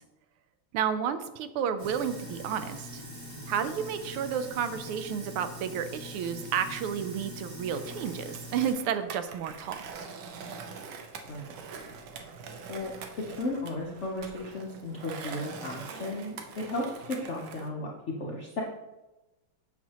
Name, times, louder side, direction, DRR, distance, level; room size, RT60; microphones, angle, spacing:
voice 1, 0.7-3.0 3.5-9.8, right 8 dB, 90° right, 10 dB, 1.5 m, -31 dB
Sink (filling or washing), 1.8-8.7, equal, 45° right, 2.5 m, -43 dB
Skateboard, 7.7-17.7, right 5 dB, 65° right, 1.2 m, -44 dB
voice 2, 13.4-17.9 18.2-18.6, left 2 dB, 65° left, -2 dB, 0.7 m, -35 dB
8.4 x 6.1 x 2.9 m, 1.0 s
omnidirectional pair, 2.3 m